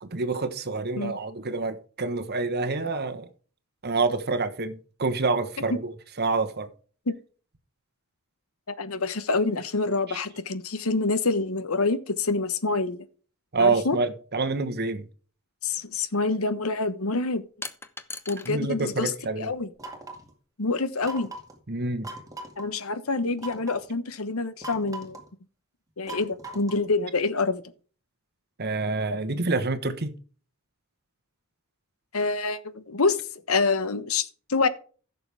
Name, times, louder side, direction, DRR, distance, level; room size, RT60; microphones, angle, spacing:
voice 1, 0.0-3.3 3.8-6.7 10.1-10.2 13.5-15.0 18.5-19.5 21.7-22.1 28.6-30.1, right 3 dB, 50° right, 1.2 m, -27 dB
voice 2, 8.7-13.0 13.6-14.0 15.6-17.4 18.3-19.1 19.4-19.7 20.6-21.3 22.6-25.2 26.0-27.6 32.1-33.2 33.5-34.7, left 3 dB, 75° left, 1.1 m, -26 dB
sound 1, 15.7-15.8 17.6-18.6 18.9-19.8, left 3 dB, 10° left, 0.8 m, -40 dB
sound 2, 19.8-20.3 21.0-21.6 22.0-22.7 23.4-23.9 24.6-25.3 26.1-26.9, right 1 dB, 15° right, 2.1 m, -40 dB
15.5 x 6.8 x 3.5 m
head